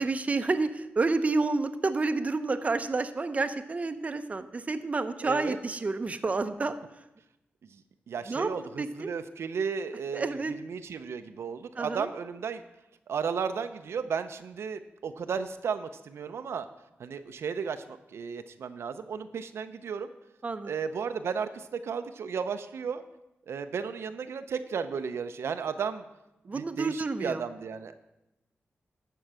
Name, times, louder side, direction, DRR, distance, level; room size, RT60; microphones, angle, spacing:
voice 1, 0.0-7.0 8.3-8.5 8.8-9.1 10.1-10.5 11.8-12.1 20.4-20.7 26.5-27.4, right 3 dB, 35° right, 9 dB, 0.6 m, -29 dB
voice 2, 5.2-5.6 7.7-12.6 13.1-16.7 17.0-20.1 20.6-23.0 23.5-26.0 26.5-28.0, right 6 dB, 80° right, 9 dB, 0.6 m, -34 dB
11.5 x 4.6 x 7.4 m, 0.92 s
wide cardioid pair, 105°, 4 cm